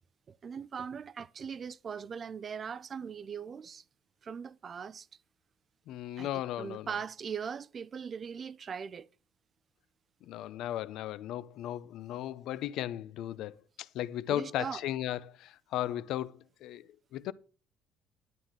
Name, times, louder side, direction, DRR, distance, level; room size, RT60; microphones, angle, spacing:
voice 1, 0.3-3.8 4.2-5.1 6.2-9.1 14.3-14.8, right 6 dB, 30° right, 0.4 m, -40 dB
voice 2, 5.9-6.9 10.2-17.3, left 12 dB, 60° left, 0.6 m, -36 dB
11.0 x 9.6 x 3.7 m
cardioid pair, 165°, 0 cm